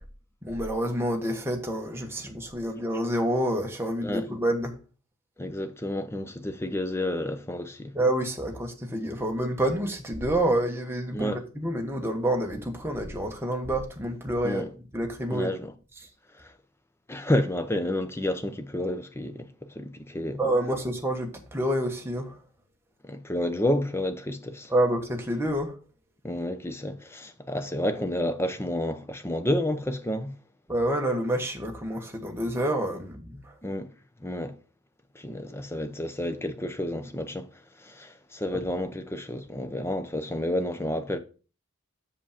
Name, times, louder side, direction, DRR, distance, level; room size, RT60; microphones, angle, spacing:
voice 1, 0.4-4.8 7.9-14.6 14.9-15.5 20.4-22.3 24.7-25.8 30.7-33.5, right 1 dB, 10° right, 1.1 m, -28 dB
voice 2, 5.4-7.9 11.1-11.4 14.4-14.7 15.3-15.7 17.1-19.5 19.7-20.4 23.0-24.7 26.2-30.3 33.6-33.9 34.2-34.5 35.2-37.5 37.8-41.2, left 1 dB, 10° left, 0.6 m, -30 dB
7.1 x 5.1 x 5.0 m
head